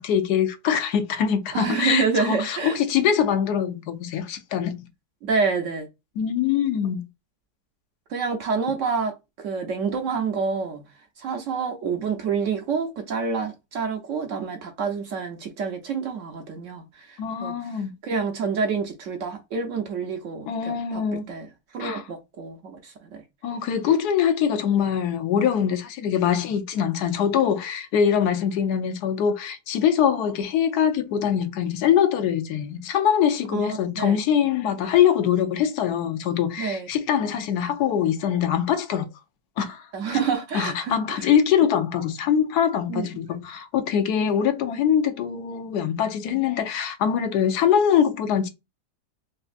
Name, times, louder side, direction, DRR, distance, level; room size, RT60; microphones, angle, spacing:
voice 1, 0.0-4.8 6.2-7.1 17.2-17.9 20.5-21.3 21.8-22.1 23.4-39.1 39.6-39.8 40.1-40.2 40.5-48.5, left 8 dB, 80° left, 1.2 m, -23 dB
voice 2, 1.5-2.8 5.2-5.9 8.1-10.9 11.2-17.5 18.0-21.0 21.3-21.5 21.7-23.2 33.5-34.2 36.6-36.9 39.9-41.3 42.9-43.1, right 5 dB, 65° right, 0.9 m, -28 dB
4.2 x 2.4 x 2.5 m
omnidirectional pair, 1.7 m